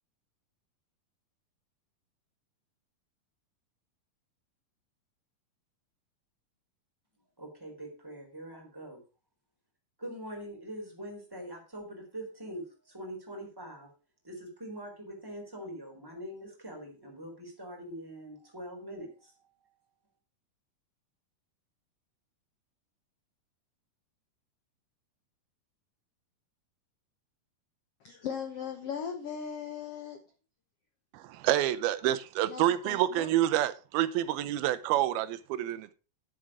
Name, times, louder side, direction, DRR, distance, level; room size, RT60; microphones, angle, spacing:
voice 1, 7.4-9.0 10.0-13.9 14.2-19.7, equal, 5° right, 3.4 m, -43 dB
voice 2, 28.0-30.2 32.5-33.3, left 7 dB, 70° left, 1.4 m, -38 dB
voice 3, 31.1-35.9, right 13 dB, 90° right, 2.7 m, -28 dB
10.0 x 7.6 x 4.8 m
omnidirectional pair, 4.2 m